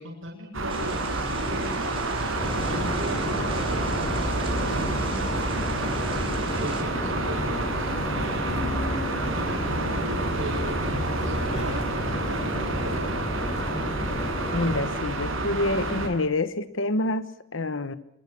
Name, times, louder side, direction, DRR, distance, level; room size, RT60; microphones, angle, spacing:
voice 1, 0.0-1.7 2.4-5.3 6.6-8.7 9.1-13.5, equal, 70° right, -1 dB, 7.7 m, -38 dB
sound 1, 0.5-16.1, right 2 dB, 85° right, 6.8 m, -29 dB
sound 2, 0.7-6.8, right 3 dB, 25° right, 5.9 m, -39 dB
sound 3, 2.4-14.8, left 1 dB, 30° left, 4.7 m, -32 dB
voice 2, 14.5-18.0, left 2 dB, 75° left, 14 dB, 1.3 m, -27 dB
27.0 x 20.5 x 8.6 m, 0.74 s
head